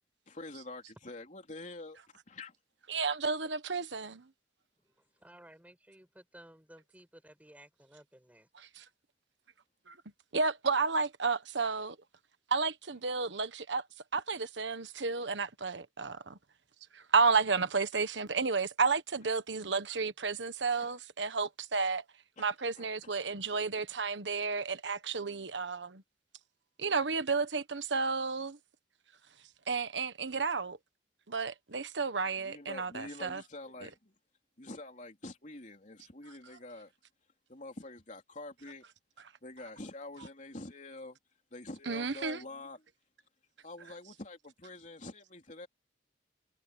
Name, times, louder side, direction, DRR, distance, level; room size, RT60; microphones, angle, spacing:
voice 1, 0.3-2.5 20.8-20.9 22.4-22.5 22.7-23.1 32.4-34.1 34.6-36.9 37.5-38.9 39.4-41.2 41.5-42.9 43.6-45.7, left 2 dB, 45° left, 3.5 m, -46 dB
voice 2, 2.9-4.2 8.8-8.9 9.9-10.0 10.3-11.9 12.5-13.8 14.1-16.4 16.9-22.0 22.4-26.0 26.8-28.6 29.7-30.8 31.3-33.4 41.9-42.4, right 4 dB, 85° right, 1.3 m, -32 dB
voice 3, 4.8-8.5, right 1 dB, 10° right, 6.3 m, -56 dB
head